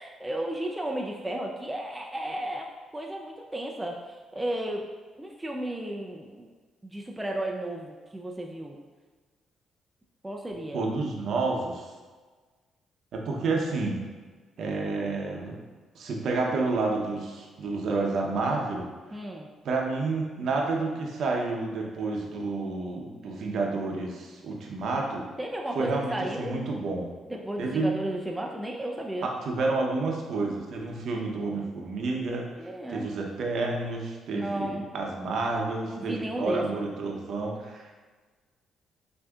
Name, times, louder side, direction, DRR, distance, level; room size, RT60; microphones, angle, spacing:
voice 1, 0.0-2.7 2.9-4.9 5.2-6.5 6.8-8.8 10.2-10.9 19.1-19.5 25.4-26.5 27.3-29.3 32.5-33.1 34.3-34.8 35.9-36.6, right 1 dB, 10° right, 0 dB, 0.4 m, -34 dB
voice 2, 10.7-11.9 13.1-14.0 14.6-15.6 15.9-18.9 19.6-25.2 25.7-27.1 27.6-28.0 29.2-32.5 32.9-38.0, right 3 dB, 65° right, 0 dB, 0.7 m, -29 dB
6.2 x 2.7 x 2.3 m, 1.4 s
cardioid pair, 90°, 0 cm